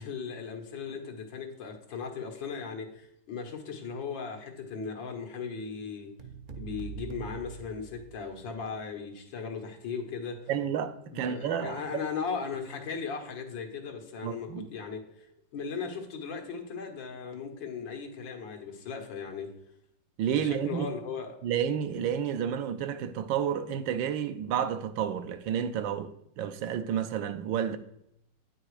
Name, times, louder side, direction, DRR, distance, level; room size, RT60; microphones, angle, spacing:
voice 1, 0.0-6.1 6.6-10.5 11.1-15.3 15.5-19.5 20.3-21.4, left 5 dB, 75° left, 2.1 m, -37 dB
sound 1, 6.2-8.5, right 7 dB, 60° right, 0.5 m, -43 dB
voice 2, 10.5-11.8 14.2-14.7 20.2-20.9 21.4-27.8, right 9 dB, 85° right, 1.4 m, -30 dB
9.5 x 6.3 x 4.9 m
omnidirectional pair, 2.0 m